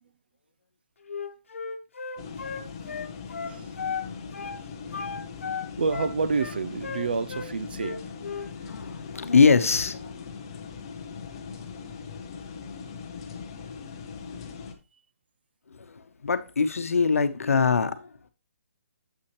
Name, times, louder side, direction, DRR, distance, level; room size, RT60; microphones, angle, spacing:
Wind instrument woodwind instrument, 1.1-4.1 4.3-4.6 4.9-7.5 7.8-8.5, left 5 dB, 65° left, 1.0 m, -35 dB
sound 1, 2.2-14.7, left 5 dB, 20° left, 0.6 m, -40 dB
voice 1, 3.1-4.2 5.8-8.0, right 4 dB, 45° right, 0.4 m, -30 dB
voice 2, 8.6-10.2 15.7-18.3, left 5 dB, 85° left, 0.9 m, -23 dB
7.7 x 5.9 x 3.1 m
hypercardioid pair, 180°, 7 cm